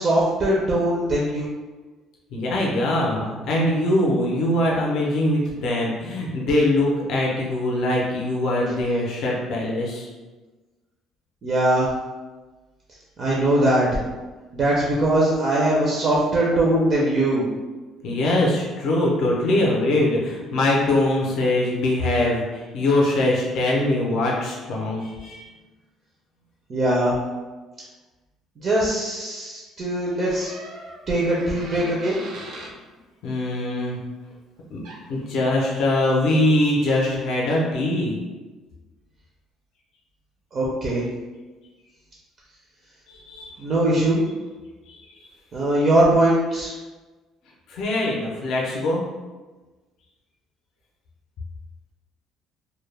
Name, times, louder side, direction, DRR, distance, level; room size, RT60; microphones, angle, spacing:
voice 1, 0.0-1.5 11.4-11.9 13.2-14.0 14.5-17.5 26.7-27.2 28.6-30.5 31.1-32.2 40.5-41.1 43.6-44.3 45.5-46.7, right 1 dB, 30° right, -5 dB, 0.4 m, -21 dB
voice 2, 2.3-10.1 18.0-25.4 33.2-34.0 34.7-34.8 35.1-38.2 43.1-43.6 44.9-45.2 47.7-49.0, left 1 dB, 55° left, -3 dB, 0.5 m, -22 dB
Door, 30.2-32.8 34.6-34.7 34.8-35.2, right 2 dB, 85° right, 0.5 m, -40 dB
2.2 x 2.1 x 3.1 m, 1.2 s
cardioid pair, 165°, 0 cm